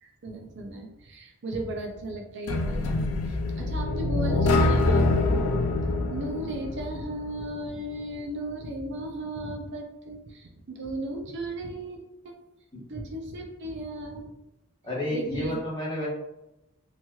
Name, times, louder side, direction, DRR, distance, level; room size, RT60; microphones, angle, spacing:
voice 1, 0.0-12.0 12.2-12.4 12.9-14.4 15.1-15.6, right 1 dB, 55° right, 2 dB, 0.4 m, -36 dB
sound 1, 2.5-7.4, left 2 dB, 85° left, 0.4 m, -25 dB
voice 2, 14.8-16.1, equal, 20° left, -7 dB, 1.0 m, -30 dB
3.0 x 2.8 x 2.3 m, 0.92 s
head